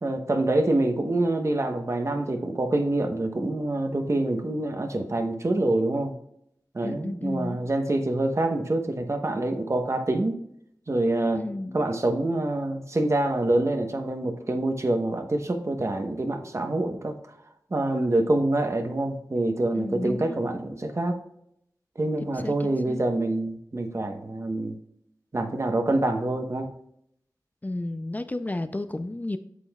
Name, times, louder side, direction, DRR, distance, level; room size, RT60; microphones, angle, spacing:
voice 1, 0.0-6.1 6.7-10.4 10.9-11.4 11.7-17.1 17.7-21.2 22.0-24.8 25.3-26.7, right 2 dB, 45° right, 5 dB, 1.0 m, -26 dB
voice 2, 6.8-7.6 11.4-11.8 19.8-20.3 22.4-23.0 27.6-29.4, left 2 dB, 25° left, 10 dB, 0.4 m, -32 dB
8.2 x 7.7 x 2.3 m, 0.73 s
wide cardioid pair, 70°, 7 cm